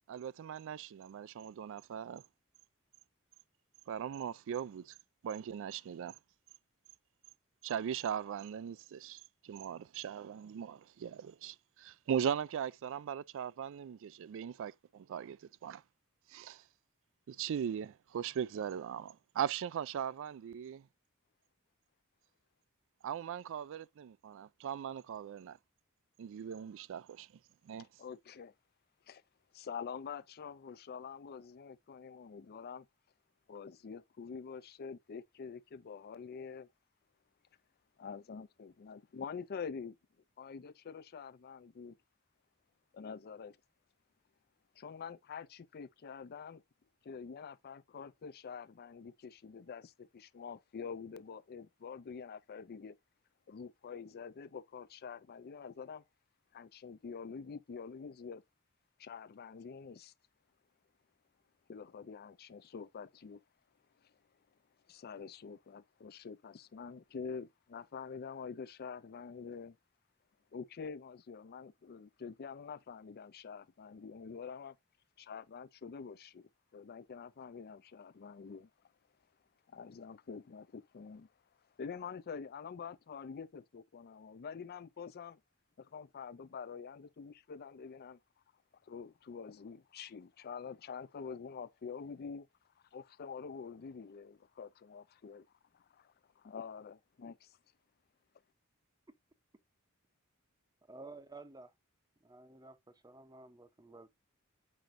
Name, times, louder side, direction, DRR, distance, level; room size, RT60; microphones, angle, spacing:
voice 1, 0.1-2.2 3.9-4.9 5.2-6.2 7.6-15.8 16.3-16.6 17.3-20.8 23.0-25.6 26.2-27.3 27.7-27.9, right 8 dB, 65° right, 0.3 m, -39 dB
voice 2, 28.0-28.5 29.1-29.2 29.5-32.9 33.5-36.7 38.0-40.0 40.4-42.0 42.9-43.6 44.8-46.6 47.0-53.0 53.5-56.0 56.5-58.4 59.0-60.1 61.7-63.4 64.0-64.1 64.9-69.8 70.5-74.8 75.2-78.7 79.7-81.3 81.8-85.4 85.8-88.2 88.8-92.5 92.9-95.5 95.7-97.6, left 6 dB, 50° left, 0.4 m, -46 dB
voice 3, 100.9-101.7 102.2-104.1, right 3 dB, 20° right, 0.7 m, -52 dB
7.6 x 5.1 x 2.5 m
head